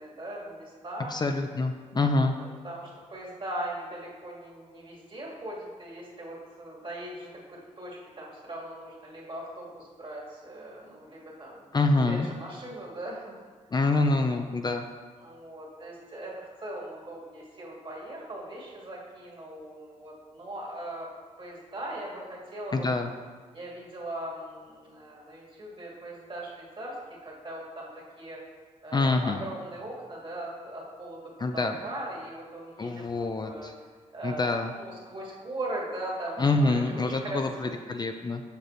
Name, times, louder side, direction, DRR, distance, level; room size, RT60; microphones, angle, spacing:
voice 1, 0.0-1.2 2.6-11.7 12.1-13.4 15.2-21.1 21.4-22.9 23.5-27.0 27.2-28.4 28.8-33.7 34.1-37.7, right 1 dB, 40° right, -4 dB, 2.1 m, -39 dB
voice 2, 1.1-2.4 11.7-12.3 13.7-14.9 22.7-23.1 28.9-29.4 31.4-31.8 32.8-33.7 34.2-34.7 36.4-38.4, left 3 dB, 35° left, 5 dB, 0.5 m, -26 dB
6.6 x 6.4 x 3.2 m, 1.5 s
cardioid pair, 80°, 13 cm